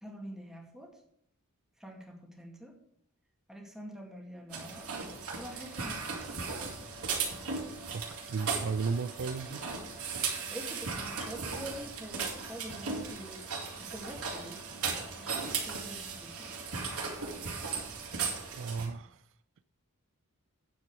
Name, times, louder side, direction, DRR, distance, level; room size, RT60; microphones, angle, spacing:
voice 1, 0.0-0.9 1.8-2.7 3.5-4.9 5.3-6.4 10.5-13.4 13.9-14.6 15.2-16.5, equal, ahead, 2.1 m, -45 dB
sound 1, 4.5-18.9, right 5 dB, 80° right, 2.5 m, -37 dB
voice 2, 7.9-9.7 18.5-19.2, right 5 dB, 60° right, 0.4 m, -34 dB
9.1 x 7.6 x 4.8 m
head